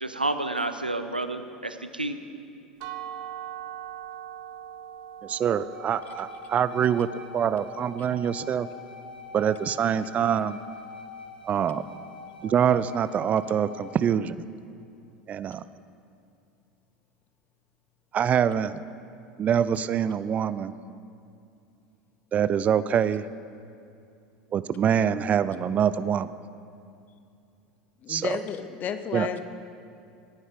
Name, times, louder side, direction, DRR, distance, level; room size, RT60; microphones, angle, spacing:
voice 1, 0.0-2.2, right 2 dB, 90° right, 9 dB, 0.6 m, -30 dB
sound 1, 2.8-8.6, right 11 dB, 55° right, 0.9 m, -42 dB
voice 2, 5.2-7.1 7.3-8.7 9.3-10.6 11.5-11.8 12.4-14.4 15.3-15.6 18.1-18.8 19.4-20.7 22.3-23.2 24.5-26.3 28.1-28.4 29.1-29.3, right 8 dB, 30° right, 15 dB, 0.4 m, -25 dB
sound 2, 5.7-14.0, left 3 dB, 80° left, 1.1 m, -44 dB
voice 3, 28.0-29.4, left 8 dB, 35° left, 10 dB, 0.8 m, -32 dB
17.5 x 9.6 x 5.0 m, 2.5 s
figure-of-eight pair, 75°, 5 cm